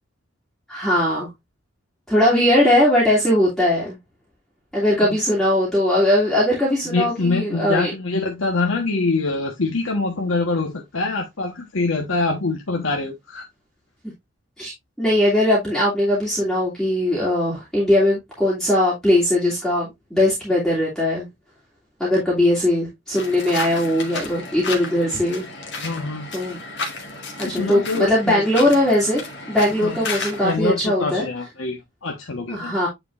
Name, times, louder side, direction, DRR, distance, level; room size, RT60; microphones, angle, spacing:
voice 1, 0.7-1.3 2.1-4.0 4.7-7.9 14.6-14.7 15.0-21.3 22.0-25.4 26.3-26.6 27.4-29.2 29.5-31.2 32.5-32.9, left 1 dB, 5° left, 2.7 m, -19 dB
voice 2, 6.9-13.4 25.8-26.3 27.4-28.4 29.8-30.0 30.4-32.8, left 3 dB, 85° left, 1.3 m, -24 dB
sound 1, 23.1-30.6, left 3 dB, 60° left, 1.9 m, -33 dB
9.2 x 4.6 x 2.5 m
head